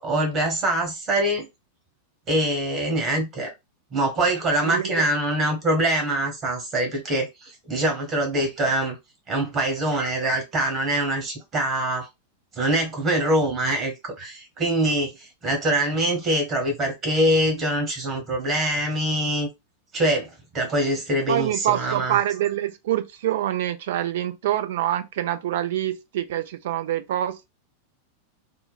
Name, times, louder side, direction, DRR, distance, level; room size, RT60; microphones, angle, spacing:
voice 1, 0.0-1.4 2.3-3.5 3.9-9.0 9.3-12.1 12.5-19.5 19.9-22.2, right 1 dB, 30° right, 1.4 m, -24 dB
voice 2, 4.6-5.1 21.3-27.5, right 12 dB, 55° right, 0.4 m, -26 dB
3.7 x 2.2 x 2.3 m
figure-of-eight pair, 90°, 0 cm